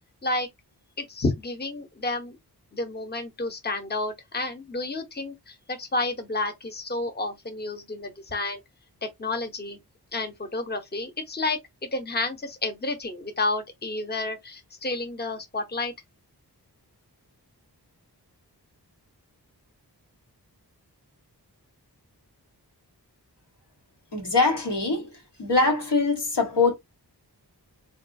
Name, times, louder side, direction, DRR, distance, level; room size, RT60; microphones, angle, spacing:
voice 1, 1.0-2.4 2.7-8.6 9.0-9.8 10.1-11.6 11.9-15.9, left 2 dB, 25° left, 0.8 m, -30 dB
voice 2, 24.1-26.7, left 3 dB, 90° left, 1.3 m, -23 dB
3.6 x 2.3 x 2.5 m
wide cardioid pair, 65°, 40 cm